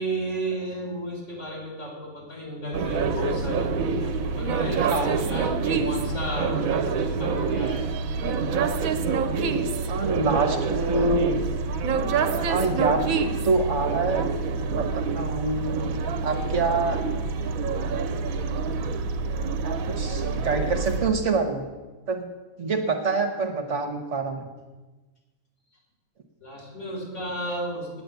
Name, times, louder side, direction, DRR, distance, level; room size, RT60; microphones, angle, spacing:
voice 1, 0.0-7.9 26.4-28.0, right 1 dB, 55° left, -1 dB, 3.9 m, -33 dB
sound 1, 2.7-21.1, right 5 dB, 75° right, 1.2 m, -27 dB
voice 2, 9.9-11.3 12.5-13.0 13.4-14.3 14.7-15.8 16.2-17.0 19.6-21.7 22.1-22.3 22.6-24.5, right 3 dB, 60° right, 4 dB, 1.4 m, -26 dB
9.4 x 9.1 x 8.1 m, 1.2 s
omnidirectional pair, 1.5 m